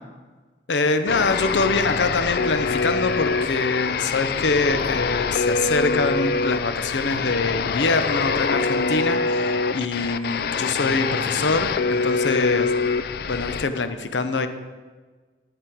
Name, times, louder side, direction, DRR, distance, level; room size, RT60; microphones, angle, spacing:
voice 1, 0.7-12.7 13.3-14.5, left 3 dB, 80° left, 9 dB, 0.7 m, -24 dB
sound 1, 1.1-13.6, left 4 dB, 55° left, 0.4 m, -24 dB
12.5 x 6.8 x 4.6 m, 1.4 s
head